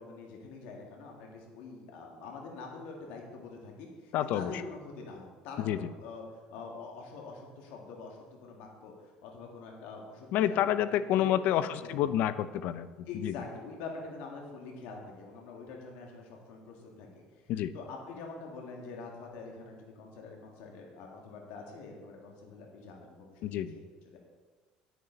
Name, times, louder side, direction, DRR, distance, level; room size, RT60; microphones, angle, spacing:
voice 1, 0.0-6.2 6.5-8.9 9.2-10.7 11.1-12.1 13.1-17.1 17.7-23.5 23.7-23.8 24.1-24.2, left 4 dB, 80° left, 0 dB, 2.1 m, -45 dB
voice 2, 4.1-4.5 5.6-5.9 10.3-12.9 13.2-13.3 17.5-17.7 23.4-23.7, left 11 dB, 65° left, 14 dB, 0.5 m, -28 dB
9.4 x 9.3 x 4.0 m, 1.4 s
cardioid pair, 120°, 3 cm